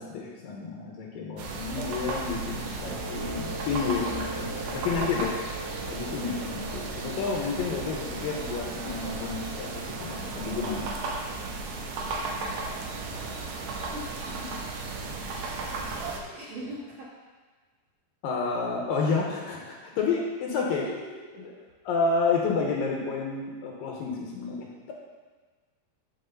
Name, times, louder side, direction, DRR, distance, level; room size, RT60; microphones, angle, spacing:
voice 1, 0.0-5.3 5.6-10.9 18.2-20.9 21.9-24.9, left 4 dB, 70° left, -2 dB, 2.6 m, -30 dB
sound 1, 1.4-16.2, right 3 dB, 90° right, 3.1 m, -35 dB
Wind instrument woodwind instrument, 2.9-10.2, right 2 dB, 75° right, 3.3 m, -42 dB
voice 2, 12.8-14.4 15.2-15.5 15.8-17.1 20.8-21.5, equal, 50° right, -6 dB, 2.6 m, -43 dB
10.5 x 4.7 x 6.7 m, 1.4 s
omnidirectional pair, 4.6 m